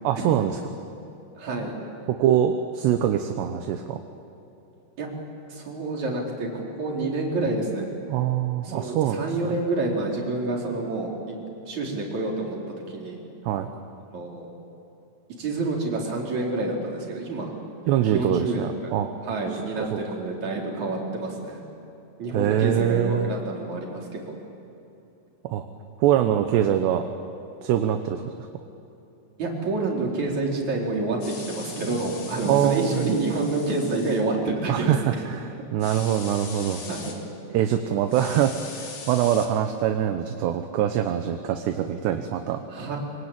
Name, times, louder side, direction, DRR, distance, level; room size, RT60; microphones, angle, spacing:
voice 1, 0.0-0.6 2.1-4.0 8.1-9.2 13.5-13.7 17.9-19.1 19.5-19.9 22.3-23.3 25.5-25.6 26.0-27.0 27.6-28.2 32.4-33.1 34.7-35.4 35.7-36.8 37.5-42.6, right 10 dB, 75° right, 6 dB, 2.9 m, -23 dB
voice 2, 1.4-1.7 5.0-5.1 5.5-7.9 8.6-11.1 11.6-12.6 12.9-13.2 14.1-14.5 15.4-17.5 18.1-18.9 19.2-21.6 22.2-24.3 29.4-35.2 36.9-37.1 42.7-43.0, right 2 dB, 40° right, -1 dB, 5.0 m, -28 dB
sound 1, 31.2-34.2 35.8-37.2 38.1-39.5, left 4 dB, 45° left, 4.0 m, -40 dB
25.5 x 24.5 x 8.9 m, 2.8 s
omnidirectional pair, 5.5 m